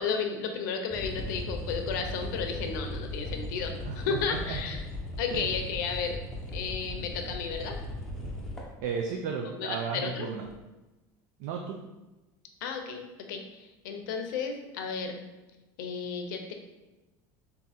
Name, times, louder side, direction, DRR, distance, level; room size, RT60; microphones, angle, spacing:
voice 1, 0.0-4.8 5.2-6.2 6.5-7.8 9.5-10.3 12.6-13.0 13.3-15.2 15.8-16.5, left 5 dB, 85° left, 4 dB, 0.6 m, -33 dB
sound 1, 0.9-8.8 10.0-10.1 10.4-10.5, left 1 dB, 5° left, 0.7 m, -37 dB
voice 2, 3.8-4.6 5.3-5.5 8.8-10.4 11.4-11.8, right 6 dB, 70° right, 2 dB, 0.5 m, -34 dB
3.6 x 2.7 x 4.2 m, 1.1 s
supercardioid pair, 135°, 10 cm